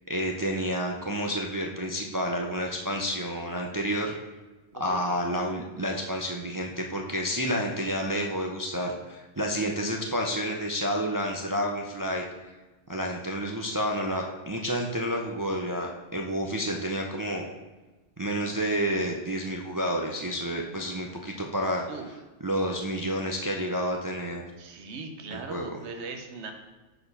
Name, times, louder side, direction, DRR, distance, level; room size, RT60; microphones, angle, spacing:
voice 1, 0.1-4.1 4.7-12.2 12.9-17.4 18.2-21.8 22.4-24.4 25.3-25.7, equal, 30° right, 0 dB, 0.3 m, -30 dB
voice 2, 24.6-26.5, right 4 dB, 60° right, 4 dB, 1.1 m, -39 dB
6.5 x 4.5 x 5.4 m, 1.2 s
omnidirectional pair, 1.3 m